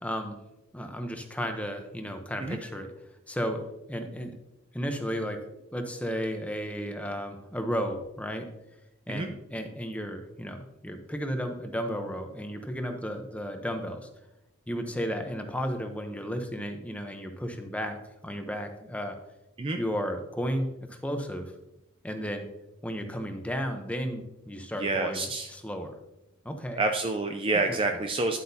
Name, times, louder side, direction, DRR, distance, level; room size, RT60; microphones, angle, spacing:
voice 1, 0.0-0.4 0.7-2.9 3.3-3.6 3.9-4.3 4.7-5.4 5.7-8.5 9.1-14.1 14.7-18.0 18.2-19.2 19.8-21.5 22.0-22.5 22.8-26.0 26.4-26.8 27.7-27.8, equal, 5° left, 5 dB, 0.8 m, -33 dB
voice 2, 24.8-25.5 26.8-28.4, right 3 dB, 25° right, 5 dB, 0.4 m, -28 dB
10.5 x 7.9 x 2.8 m, 0.90 s
head